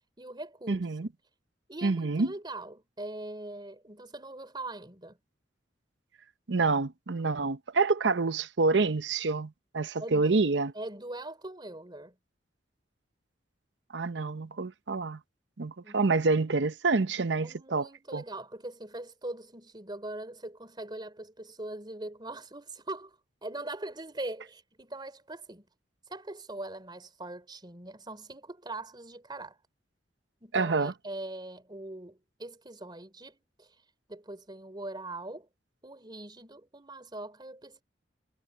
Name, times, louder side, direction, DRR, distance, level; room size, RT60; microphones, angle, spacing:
voice 1, 0.2-0.9 1.7-5.2 10.0-10.5 10.7-12.2 15.8-16.0 17.4-25.7 26.1-29.6 30.4-33.8 34.1-35.5 35.8-37.8, right 2 dB, 25° right, 3.7 m, -41 dB
voice 2, 0.7-1.1 1.8-2.3 6.5-10.7 13.9-15.2 15.6-17.9 18.1-18.2 30.5-30.9, right 3 dB, 75° right, 0.8 m, -27 dB
head